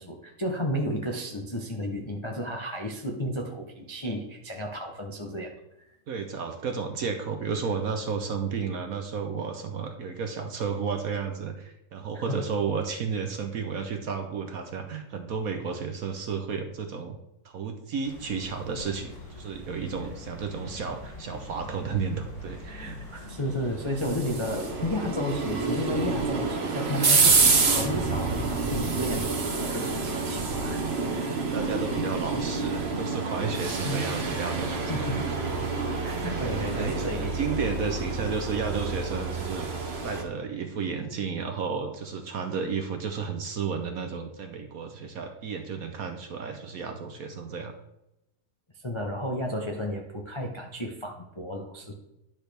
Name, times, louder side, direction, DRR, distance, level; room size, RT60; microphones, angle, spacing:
voice 1, 0.0-5.5 12.1-12.4 23.3-31.4 33.8-34.0 34.9-35.2 36.0-37.4 48.8-51.9, equal, 50° left, 1 dB, 0.3 m, -33 dB
voice 2, 6.1-17.2 17.4-23.3 31.4-34.9 36.5-39.7 40.0-47.7, right 5 dB, 60° right, 6 dB, 1.0 m, -32 dB
sound 1, 18.0-26.5, left 2 dB, 65° left, 3.6 m, -44 dB
sound 2, 23.6-40.2, right 4 dB, 40° right, 1.1 m, -28 dB
10.5 x 6.2 x 3.4 m, 0.89 s
omnidirectional pair, 2.1 m